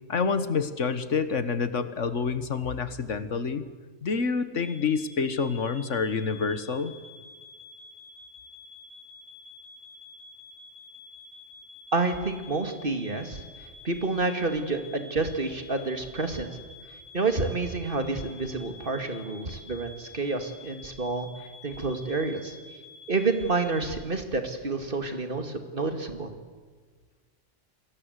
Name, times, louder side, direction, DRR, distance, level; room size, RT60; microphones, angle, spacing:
voice 1, 0.1-3.6 4.0-6.9, left 5 dB, 80° left, 12 dB, 1.7 m, -28 dB
sound 1, 4.6-23.9, left 3 dB, 40° left, 2.4 m, -49 dB
voice 2, 11.9-13.4 13.8-16.6 17.1-21.3 21.6-22.6 23.1-26.3, right 3 dB, 45° right, 7 dB, 2.5 m, -29 dB
28.5 x 21.0 x 8.2 m, 1.5 s
omnidirectional pair, 1.2 m